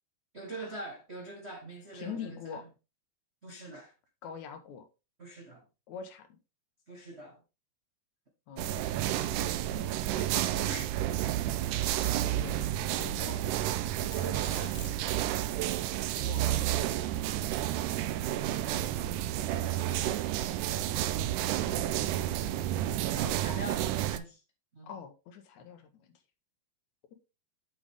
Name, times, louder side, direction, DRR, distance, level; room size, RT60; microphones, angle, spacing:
voice 1, 0.3-2.6 3.4-3.9 5.2-5.6 6.9-7.4 10.7-10.9 14.2-14.8 20.8-21.3 22.3-22.5 22.8-24.4 24.7-24.9, right 2 dB, 55° right, 0.7 m, -43 dB
voice 2, 1.9-2.6 4.2-4.9 5.9-6.3 8.5-8.7 10.1-10.4 11.2-11.3 12.0-13.4 16.1-16.4 18.5-20.1 24.8-26.1, left 7 dB, 70° left, 2.4 m, -45 dB
sound 1, 8.6-24.2, right 12 dB, 90° right, 2.1 m, -31 dB
Domestic sounds home sounds, 13.4-15.3, left 12 dB, 90° left, 2.3 m, -50 dB
7.3 x 6.9 x 3.5 m
omnidirectional pair, 3.5 m